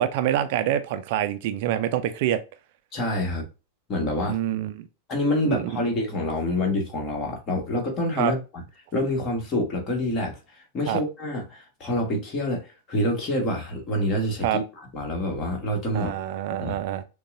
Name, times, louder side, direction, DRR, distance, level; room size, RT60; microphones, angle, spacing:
voice 1, 0.0-2.4 4.3-4.9 5.4-5.8 8.2-8.3 10.9-11.0 14.4-14.6 15.9-17.0, right 11 dB, 50° right, 0.4 m, -26 dB
voice 2, 2.9-3.5 3.9-4.4 5.1-8.6 8.9-16.1 16.6-16.8, left 1 dB, 30° left, 1.6 m, -27 dB
6.4 x 2.3 x 2.5 m
figure-of-eight pair, 90°, 0 cm